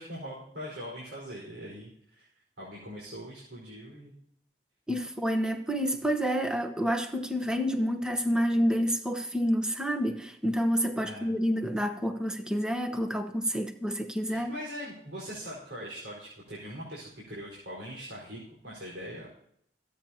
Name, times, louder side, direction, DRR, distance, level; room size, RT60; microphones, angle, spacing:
voice 1, 0.0-2.3 2.6-4.1 11.0-11.3 14.3-19.3, equal, 85° right, 4.9 m, -41 dB
voice 2, 4.9-14.5, equal, 5° right, 1.1 m, -28 dB
27.0 x 9.2 x 2.9 m
head